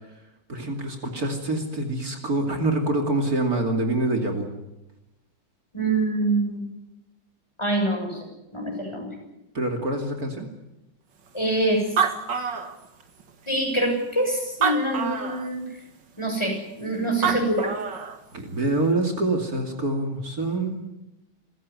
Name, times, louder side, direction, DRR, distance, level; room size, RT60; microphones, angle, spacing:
voice 1, 0.5-4.5 9.5-10.5 17.2-17.4 18.3-20.8, right 2 dB, 55° right, 4 dB, 3.1 m, -26 dB
voice 2, 5.7-6.6 7.6-8.3 8.5-9.1 11.3-11.8 13.5-15.6 16.2-17.7, right 1 dB, 15° left, 2 dB, 6.9 m, -25 dB
Animal, 11.5-11.6 11.8-13.2 13.9-14.0 14.5-15.5 16.9-17.0 17.2-18.2, right 6 dB, 85° right, 2.6 m, -26 dB
28.0 x 15.0 x 9.7 m, 0.94 s
omnidirectional pair, 1.9 m